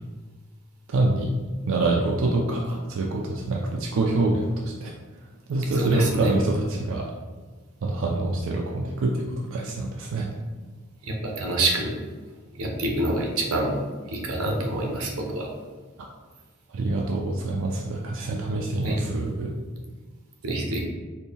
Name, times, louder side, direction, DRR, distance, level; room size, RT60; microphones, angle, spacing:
voice 1, 0.9-1.3 1.7-4.9 5.5-7.1 7.8-10.3 16.0-16.1 16.7-19.6, right 2 dB, 60° right, 0 dB, 0.3 m, -26 dB
voice 2, 5.7-6.3 11.0-11.9 12.6-13.7 14.1-15.5 18.8-19.0 20.4-20.8, right 1 dB, 90° right, 0 dB, 0.7 m, -26 dB
4.2 x 2.2 x 3.5 m, 1.4 s
head